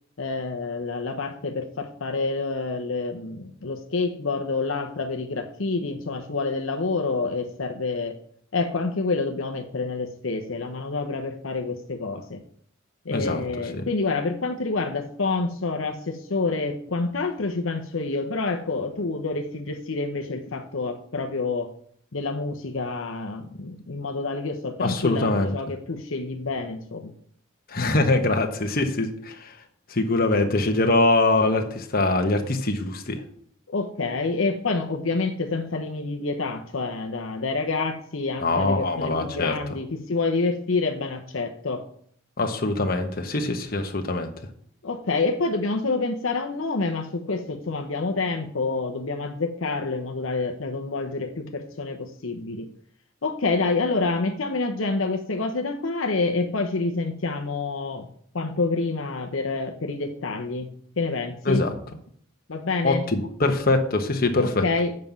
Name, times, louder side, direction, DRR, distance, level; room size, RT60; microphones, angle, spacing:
voice 1, 0.2-8.2 8.5-12.4 13.0-21.7 22.1-27.1 33.7-41.8 44.8-52.7 53.2-58.1 58.3-61.7 62.5-63.0 64.4-65.0, left 3 dB, 75° left, 4 dB, 0.9 m, -28 dB
voice 2, 13.1-13.4 13.7-13.8 24.8-25.5 27.7-29.5 29.9-33.2 38.4-39.5 42.4-44.3 61.5-61.7 62.8-64.6, left 2 dB, 45° left, 4 dB, 1.1 m, -23 dB
7.6 x 5.4 x 7.3 m, 0.62 s
head